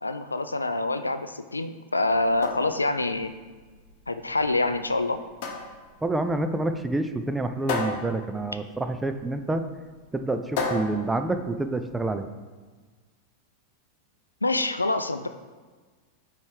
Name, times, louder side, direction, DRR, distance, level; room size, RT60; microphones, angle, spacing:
voice 1, 0.0-3.3 4.1-5.2 14.4-15.3, left 2 dB, 80° left, 10 dB, 0.3 m, -26 dB
sound 1, 2.1-12.1, left 3 dB, 45° left, 1.0 m, -36 dB
voice 2, 6.0-9.6 10.1-12.3, right 2 dB, 10° right, 8 dB, 0.4 m, -28 dB
5.3 x 4.5 x 4.9 m, 1.4 s
figure-of-eight pair, 90°, 0 cm